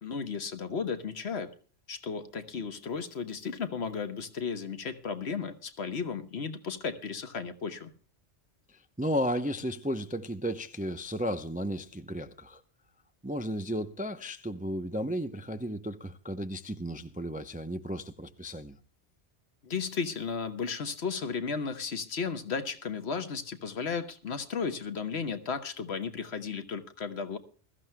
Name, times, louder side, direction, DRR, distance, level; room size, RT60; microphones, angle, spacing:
voice 1, 0.0-1.5 1.9-7.9 19.6-27.4, left 5 dB, 60° left, 1.3 m, -34 dB
voice 2, 9.0-12.6 13.2-18.8, equal, 10° right, 0.5 m, -34 dB
21.5 x 14.0 x 2.2 m
omnidirectional pair, 1.2 m